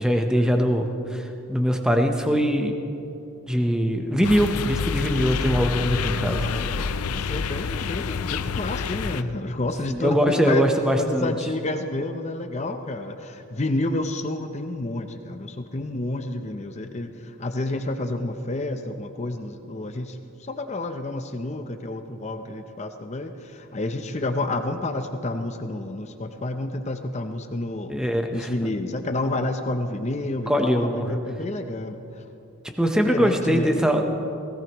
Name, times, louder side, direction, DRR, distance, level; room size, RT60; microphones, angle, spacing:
voice 1, 0.0-2.8 3.5-6.5 9.9-11.3 27.9-28.7 30.5-31.2 32.8-34.1, equal, 5° right, 4 dB, 0.8 m, -22 dB
sound 1, 4.2-9.2, left 5 dB, 85° left, 0.5 m, -28 dB
voice 2, 6.4-10.6 10.9-28.0 28.3-32.0 33.1-33.9, left 2 dB, 30° left, 7 dB, 0.6 m, -30 dB
18.0 x 17.0 x 3.0 m, 2.8 s
head